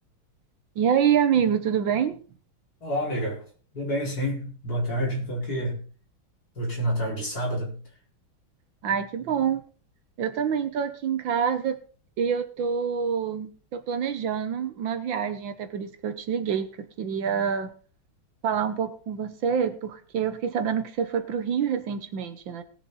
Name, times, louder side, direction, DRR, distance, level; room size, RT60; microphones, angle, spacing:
voice 1, 0.8-2.2 8.8-9.6 10.2-11.8 12.2-17.7 18.4-22.6, right 7 dB, 70° right, 1.6 m, -26 dB
voice 2, 2.8-3.4 3.7-5.8 6.6-7.8, equal, 45° left, 5.0 m, -28 dB
19.0 x 7.0 x 4.0 m
omnidirectional pair, 2.3 m